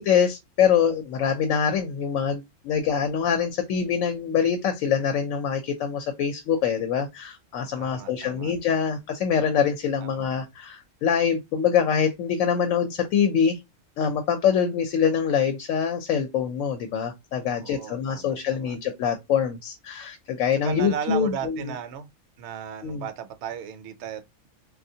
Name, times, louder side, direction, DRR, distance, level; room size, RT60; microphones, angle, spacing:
voice 1, 0.0-13.6 14.0-21.7 22.8-23.0, left 7 dB, 80° left, 1.0 m, -24 dB
voice 2, 7.8-8.5 10.0-10.3 17.6-18.8 20.6-22.1 22.4-24.5, right 8 dB, 65° right, 0.8 m, -36 dB
3.3 x 2.5 x 2.7 m
omnidirectional pair, 1.4 m